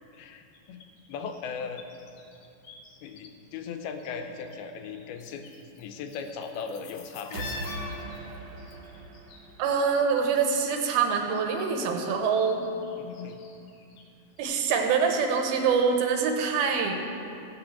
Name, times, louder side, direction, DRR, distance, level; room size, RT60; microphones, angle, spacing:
voice 1, 0.1-0.8 1.1-1.8 3.0-5.4 5.8-7.5 13.0-13.4, left 6 dB, 80° left, 6 dB, 2.8 m, -38 dB
sound 1, 0.5-3.3 3.5-4.6 4.8-10.8 11.0-14.1 14.4-14.5, left 4 dB, 60° left, 2.0 m, -46 dB
sound 2, 7.3-10.2, right 2 dB, 55° right, 1.4 m, -40 dB
voice 2, 9.6-12.6 14.4-17.0, right 5 dB, 75° right, 3 dB, 2.9 m, -25 dB
16.5 x 5.7 x 7.3 m, 2.6 s
omnidirectional pair, 4.5 m